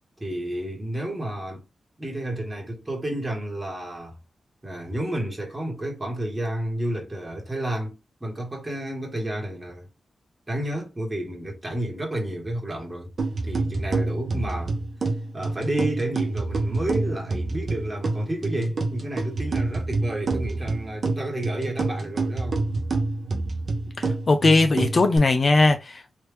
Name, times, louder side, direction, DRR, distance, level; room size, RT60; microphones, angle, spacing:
voice 1, 0.2-1.7 2.0-4.2 4.6-9.9 10.5-13.1 13.4-14.8 15.3-22.7, right 1 dB, 20° right, 1.3 m, -31 dB
sound 1, 13.2-25.2, right 3 dB, 50° right, 0.8 m, -27 dB
voice 2, 24.0-26.2, left 3 dB, 45° left, 0.5 m, -19 dB
3.2 x 2.6 x 3.3 m
wide cardioid pair, 100°, 0 cm